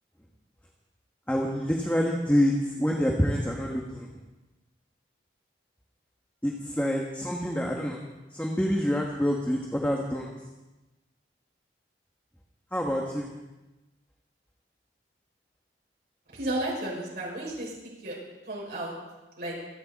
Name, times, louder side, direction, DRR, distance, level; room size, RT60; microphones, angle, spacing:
voice 1, 1.3-4.1 6.4-8.0 8.3-10.3 12.7-13.3, equal, 10° left, -1 dB, 1.3 m, -27 dB
voice 2, 16.3-17.7 18.0-18.2 18.5-18.9 19.4-19.6, right 1 dB, 60° right, -4 dB, 5.9 m, -32 dB
26.5 x 9.9 x 4.1 m, 1.1 s
head